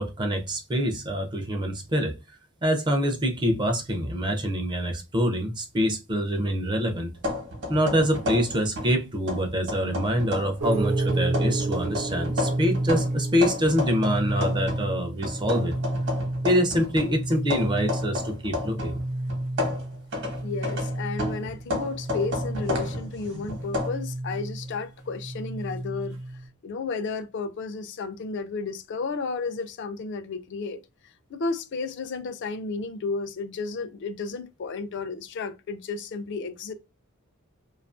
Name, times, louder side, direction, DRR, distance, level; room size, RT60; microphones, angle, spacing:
voice 1, 0.0-2.2 2.6-7.1 7.7-15.7 16.4-19.0, equal, 20° right, 0.4 m, -25 dB
sound 1, 7.2-9.0 9.3-10.6 11.1-14.9 15.2-19.0 19.3-23.9, left 2 dB, 55° right, 0.9 m, -32 dB
sound 2, 10.6-26.5, right 2 dB, 90° right, 0.7 m, -30 dB
voice 2, 20.4-26.2 26.6-36.7, left 4 dB, 55° left, 0.3 m, -33 dB
2.6 x 2.3 x 2.4 m
head